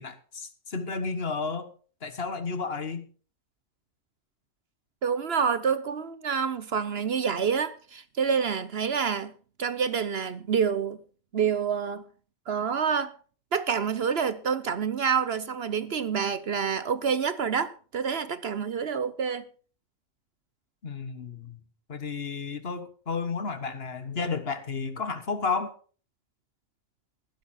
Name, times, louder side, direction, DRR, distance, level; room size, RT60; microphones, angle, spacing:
voice 1, 0.0-1.7 2.0-3.1 20.8-21.6 21.9-25.7, left 4 dB, 50° left, 1.5 m, -32 dB
voice 2, 5.0-9.3 9.6-11.0 11.3-12.0 12.5-13.1 13.5-19.4, right 6 dB, 55° right, 1.0 m, -27 dB
14.5 x 12.0 x 4.2 m
omnidirectional pair, 1.4 m